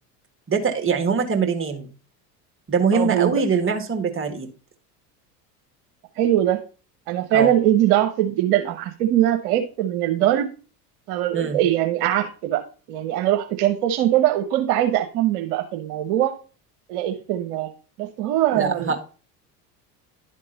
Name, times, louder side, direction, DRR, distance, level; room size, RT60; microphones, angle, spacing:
voice 1, 0.5-1.9 2.7-4.5 7.3-7.5 11.3-11.6 18.6-19.0, right 5 dB, 25° right, 5 dB, 1.8 m, -23 dB
voice 2, 2.9-3.4 6.2-6.6 7.1-10.5 11.1-12.6 12.9-16.4 16.9-17.7 18.0-19.0, right 12 dB, 65° right, 6 dB, 1.1 m, -21 dB
11.0 x 3.7 x 3.9 m, 0.35 s
hypercardioid pair, 70°, 47 cm